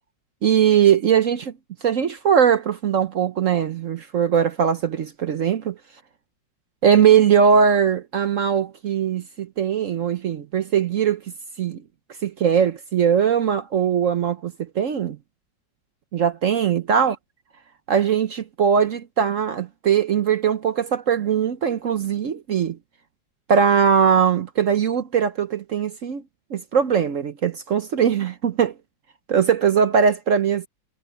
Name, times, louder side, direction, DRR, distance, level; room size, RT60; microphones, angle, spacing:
voice 1, 0.4-1.5 1.8-5.8 6.8-11.2 11.6-11.8 12.2-15.2 16.1-17.2 17.9-22.8 23.5-26.2 26.5-28.7 29.3-30.7, right 7 dB, 55° right, 0.9 m, -20 dB
omnidirectional pair, 2.0 m